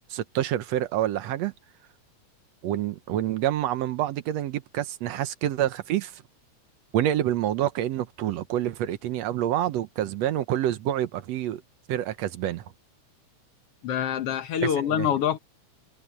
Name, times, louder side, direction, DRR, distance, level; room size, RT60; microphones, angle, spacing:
voice 1, 0.1-1.5 2.6-6.1 6.9-11.6 11.9-12.6 14.9-15.1, right 12 dB, 70° right, 2.0 m, -27 dB
voice 2, 13.8-15.4, left 9 dB, 60° left, 1.9 m, -25 dB
omnidirectional pair, 3.3 m